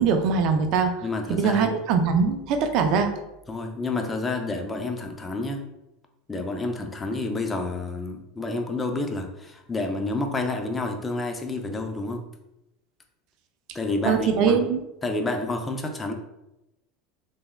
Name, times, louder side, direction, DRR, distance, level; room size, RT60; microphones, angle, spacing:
voice 1, 0.0-0.9 1.3-3.1 14.1-14.8, right 5 dB, 60° right, 6 dB, 0.5 m, -22 dB
voice 2, 1.0-1.8 3.5-5.6 6.3-12.2 13.7-14.7 15.0-16.1, left 2 dB, 20° left, 4 dB, 0.5 m, -29 dB
3.3 x 3.2 x 2.2 m, 0.91 s
supercardioid pair, 110°, 0 cm